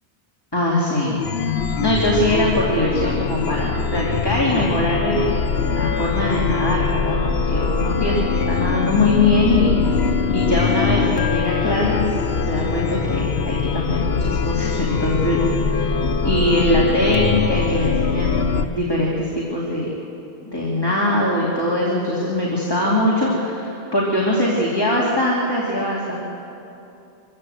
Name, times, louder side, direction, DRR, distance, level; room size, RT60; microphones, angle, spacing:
voice 1, 0.5-1.2 1.8-5.3 5.6-12.2 12.4-16.0 16.2-19.9 20.4-26.2, left 1 dB, 25° left, -4 dB, 2.7 m, -22 dB
Chime, 1.2-18.6, left 5 dB, 80° left, 1.2 m, -22 dB
24.0 x 15.0 x 7.9 m, 2.8 s
omnidirectional pair, 1.0 m